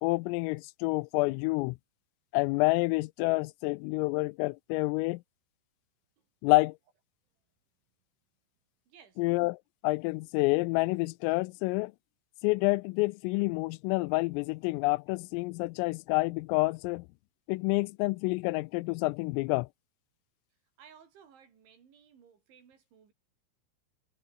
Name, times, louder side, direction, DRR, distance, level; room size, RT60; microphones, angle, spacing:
voice 1, 0.0-1.8 2.3-5.2 6.4-6.8 9.2-9.6 9.8-11.9 12.4-17.1 17.5-19.7, left 24 dB, 85° left, 3.2 m, -28 dB
voice 2, 8.9-9.2 20.8-23.1, right 7 dB, 65° right, 6.7 m, -58 dB
omnidirectional pair, 5.9 m